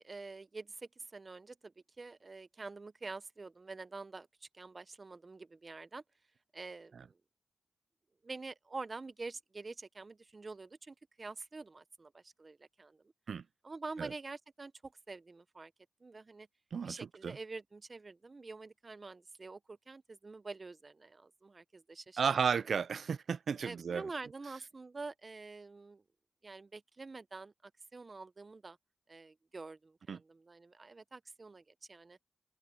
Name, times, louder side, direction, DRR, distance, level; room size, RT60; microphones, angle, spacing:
voice 1, 0.0-6.0 6.5-7.2 8.2-13.0 13.6-15.7 16.0-16.5 16.8-22.2 23.6-26.0 26.4-28.8 29.1-32.2, right 3 dB, 45° right, 0.7 m, -47 dB
voice 2, 16.7-17.4 22.2-24.0 30.1-30.2, right 6 dB, 80° right, 0.4 m, -33 dB
cardioid pair, 60°, 0 cm